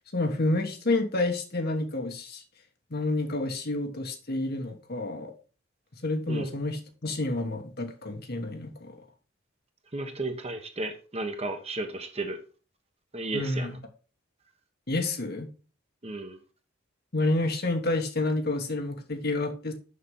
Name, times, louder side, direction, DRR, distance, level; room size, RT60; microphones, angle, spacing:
voice 1, 0.1-2.4 2.9-5.3 6.0-9.0 13.3-13.8 14.9-15.5 17.1-19.7, left 2 dB, 50° left, 1.4 m, -29 dB
voice 2, 9.9-12.4 13.1-13.8 16.0-16.4, right 2 dB, 30° right, 1.2 m, -33 dB
6.6 x 6.2 x 5.5 m
head